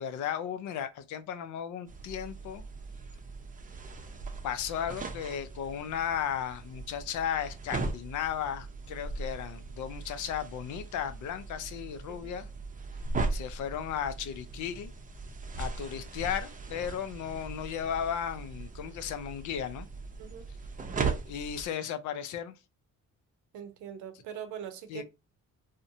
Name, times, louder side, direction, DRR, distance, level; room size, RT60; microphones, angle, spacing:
voice 1, 0.0-2.6 4.4-12.5 13.3-14.9 15.6-19.9 21.3-22.6 24.9-25.0, left 9 dB, 75° left, 0.5 m, -35 dB
sound 1, 1.9-21.7, right 3 dB, 25° right, 0.5 m, -39 dB
voice 2, 23.5-25.0, right 9 dB, 80° right, 0.7 m, -42 dB
2.6 x 2.1 x 2.6 m
cardioid pair, 90°, 30 cm